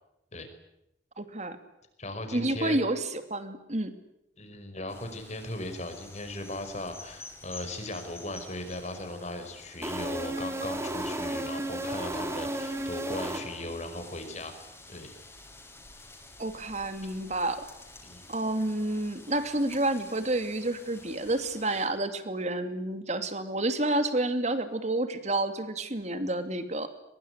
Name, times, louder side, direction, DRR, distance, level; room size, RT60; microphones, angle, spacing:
voice 1, 1.2-1.6 2.3-3.9 16.4-17.7 18.3-26.9, right 2 dB, 40° right, 9 dB, 2.6 m, -29 dB
voice 2, 2.0-2.8 4.4-14.5 14.9-15.1 18.0-18.3, left 1 dB, 40° left, 7 dB, 5.3 m, -38 dB
sound 1, 4.9-21.9, left 2 dB, 15° left, 6.3 m, -50 dB
sound 2, 9.8-13.9, right 1 dB, 15° right, 3.0 m, -33 dB
23.5 x 22.5 x 9.9 m, 0.82 s
head